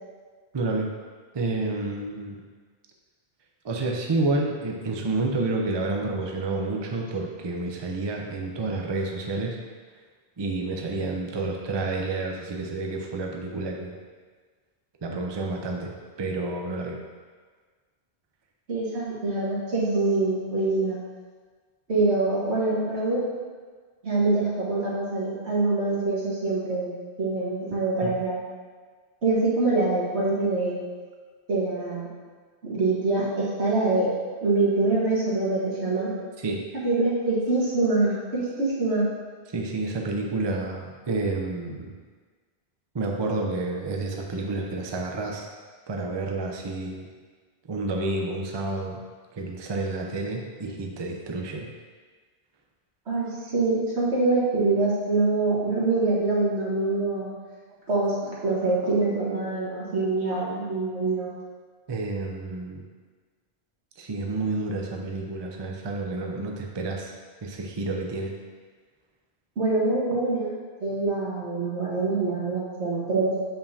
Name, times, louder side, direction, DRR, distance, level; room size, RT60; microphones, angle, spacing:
voice 1, 0.5-0.9 1.3-2.4 3.6-9.6 10.4-14.0 15.0-15.9 16.2-17.0 28.0-28.1 36.4-36.6 39.5-41.9 42.9-45.5 45.9-47.1 47.7-49.0 49.3-51.7 61.9-62.8 64.0-67.2 67.4-68.3, right 2 dB, 30° right, 1 dB, 0.5 m, -29 dB
voice 2, 18.7-21.0 21.9-23.2 24.0-26.9 27.2-28.4 29.2-30.8 31.5-32.1 32.6-34.1 34.4-36.1 36.8-39.1 53.1-57.3 57.9-58.2 58.4-61.3 69.6-73.3, right 3 dB, 90° right, -6 dB, 1.8 m, -25 dB
6.9 x 5.6 x 2.7 m, 1.5 s
omnidirectional pair, 1.1 m